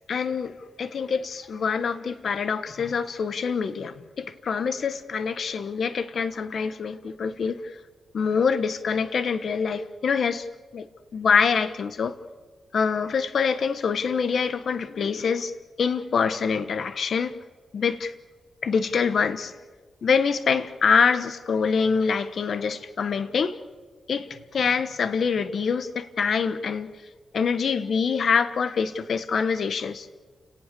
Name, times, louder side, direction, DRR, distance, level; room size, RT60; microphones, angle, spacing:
voice 1, 0.1-7.6 8.1-10.4 10.7-10.9 11.1-12.1 12.7-15.5 15.8-17.4 17.7-18.1 18.6-19.5 20.0-23.6 24.1-27.0 27.3-30.1, left 6 dB, 65° left, 12 dB, 1.3 m, -25 dB
29.5 x 18.0 x 7.0 m, 1.3 s
cardioid pair, 105°, 0 cm